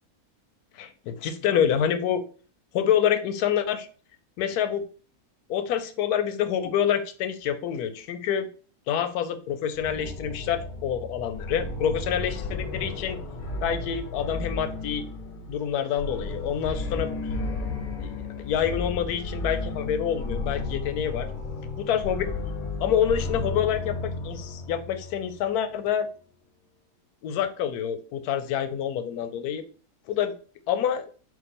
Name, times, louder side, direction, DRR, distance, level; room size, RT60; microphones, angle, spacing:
voice 1, 0.7-2.2 2.7-3.9 4.4-4.8 5.5-8.5 8.9-13.2 13.6-15.0 15.5-17.1 18.0-21.3 21.8-22.3 22.8-26.1 27.2-29.6 30.1-30.3 30.7-31.0, left 9 dB, 90° left, 9 dB, 1.1 m, -27 dB
sound 1, 9.7-25.4, left 3 dB, 55° left, 0.5 m, -33 dB
4.4 x 2.5 x 4.1 m, 0.41 s
omnidirectional pair, 1.6 m